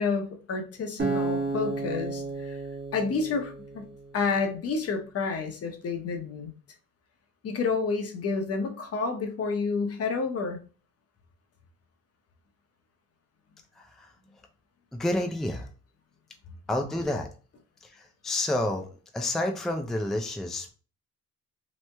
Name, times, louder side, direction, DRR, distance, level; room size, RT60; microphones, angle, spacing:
voice 1, 0.0-2.6 2.9-3.9 4.1-6.5 7.4-10.6, left 4 dB, 50° left, 5 dB, 0.7 m, -29 dB
Acoustic guitar, 1.0-4.2, right 3 dB, 35° right, 1.2 m, -32 dB
voice 2, 13.8-14.1 14.9-15.7 16.7-17.3 17.8-18.9 19.1-20.7, left 1 dB, ahead, 3 dB, 0.4 m, -29 dB
3.0 x 2.1 x 3.3 m, 0.37 s
cardioid pair, 90°, 30 cm